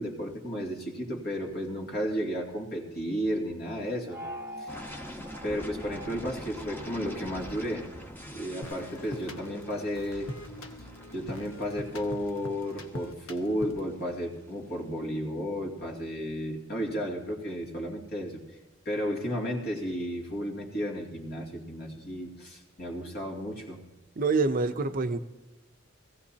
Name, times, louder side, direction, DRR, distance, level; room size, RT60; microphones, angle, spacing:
voice 1, 0.0-4.2 4.6-4.8 5.4-7.9 8.2-10.3 11.1-18.4 18.8-23.8, equal, 50° left, -1 dB, 2.6 m, -33 dB
sound 1, 4.1-8.7, equal, 15° right, 0.9 m, -45 dB
sound 2, 4.7-14.5, equal, 10° left, 1.0 m, -45 dB
sound 3, 8.6-14.0, left 1 dB, 75° left, 1.3 m, -43 dB
voice 2, 24.2-25.2, right 3 dB, 45° right, 9 dB, 0.6 m, -26 dB
19.0 x 16.0 x 2.8 m, 1.2 s
head